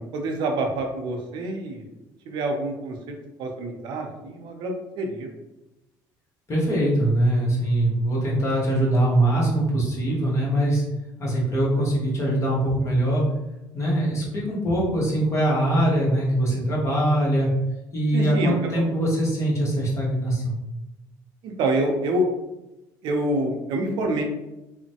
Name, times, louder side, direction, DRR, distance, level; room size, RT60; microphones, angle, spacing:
voice 1, 0.0-1.8 2.3-5.3 18.1-18.6 21.4-22.2 23.0-24.2, right 1 dB, 70° right, 3 dB, 0.5 m, -27 dB
voice 2, 6.5-10.8 11.2-13.2 13.7-17.5 17.9-20.6, right 1 dB, 40° left, -4 dB, 1.1 m, -22 dB
3.0 x 2.1 x 2.8 m, 0.99 s
cardioid pair, 105°, 8 cm